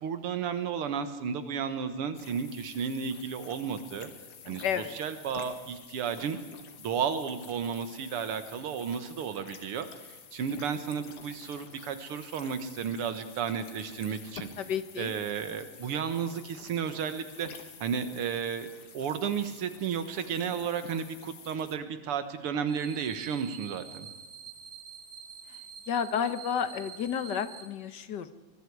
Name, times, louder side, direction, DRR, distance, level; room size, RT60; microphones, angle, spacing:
voice 1, 0.0-4.1 4.5-14.5 15.0-17.5 17.8-18.7 18.9-24.1, right 7 dB, 85° right, 10 dB, 2.2 m, -33 dB
sound 1, 2.2-21.8, left 7 dB, 85° left, 2.7 m, -49 dB
voice 2, 4.6-5.0 14.6-15.1 25.9-28.3, left 8 dB, 55° left, 12 dB, 1.6 m, -31 dB
sound 2, 22.7-27.7, right 6 dB, 50° right, 2.7 m, -47 dB
24.5 x 22.5 x 4.8 m, 1.3 s
omnidirectional pair, 2.4 m